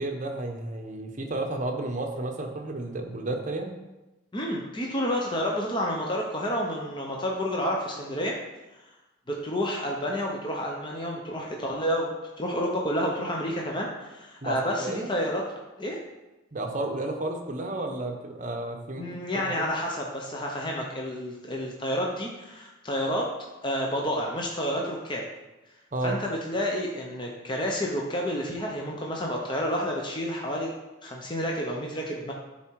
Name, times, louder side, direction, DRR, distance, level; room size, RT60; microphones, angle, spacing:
voice 1, 0.0-3.7 14.4-15.1 16.5-19.0 19.3-19.6 25.9-26.2, right 2 dB, 35° right, 3 dB, 0.9 m, -32 dB
voice 2, 4.3-8.4 8.7-8.9 9.3-15.4 15.8-16.0 19.0-23.3 23.6-25.2 26.0-30.7 31.0-32.3, equal, 20° left, -1 dB, 0.8 m, -30 dB
9.6 x 4.3 x 4.6 m, 1.1 s
head